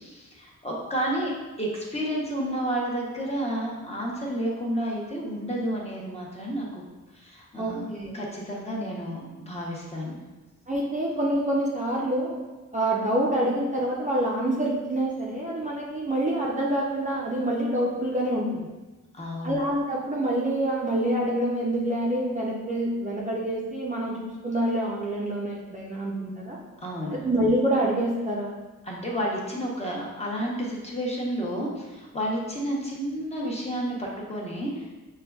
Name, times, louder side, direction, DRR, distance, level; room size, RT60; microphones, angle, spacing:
voice 1, 0.0-1.3 1.6-6.8 7.1-7.8 8.1-10.2 19.1-19.6 26.8-27.2 28.8-34.9, equal, 20° left, -3 dB, 0.8 m, -31 dB
voice 2, 7.6-8.1 10.7-12.4 12.7-18.7 19.4-26.6 27.2-28.5, right 1 dB, 25° right, -5 dB, 0.5 m, -26 dB
6.4 x 2.2 x 2.3 m, 1.2 s
wide cardioid pair, 125°, 34 cm